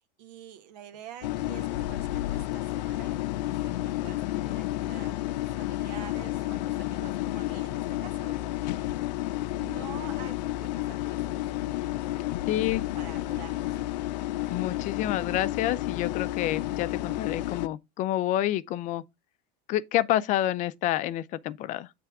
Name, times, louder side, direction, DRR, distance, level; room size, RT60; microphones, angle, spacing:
voice 1, 0.0-8.9 9.6-11.5 12.8-13.9, right 9 dB, 80° right, 1.3 m, -48 dB
sound 1, 1.2-17.7, left 15 dB, 90° left, 0.5 m, -31 dB
voice 2, 12.5-12.8 14.5-19.0 19.7-21.9, left 13 dB, 40° left, 0.4 m, -28 dB
8.3 x 3.3 x 4.7 m
supercardioid pair, 145°, 21 cm